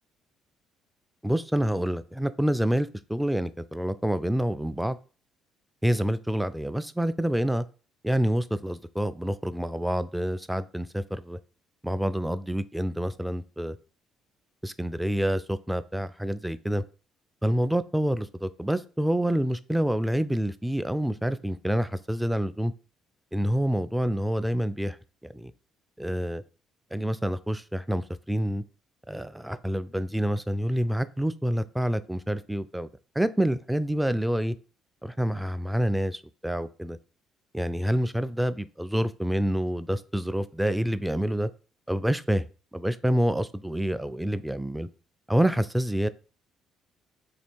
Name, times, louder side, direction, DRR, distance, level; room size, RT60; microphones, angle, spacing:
voice 1, 1.2-5.0 5.8-7.6 8.0-11.4 11.8-13.8 14.6-16.8 17.4-22.7 23.3-25.0 25.3-25.5 26.0-26.4 26.9-28.6 29.1-32.9 33.2-34.5 35.0-37.0 37.5-41.5 41.9-42.5 42.7-44.9 45.3-46.1, equal, 5° right, 13 dB, 0.3 m, -27 dB
3.3 x 2.8 x 4.3 m, 0.36 s
figure-of-eight pair, 45°, 0 cm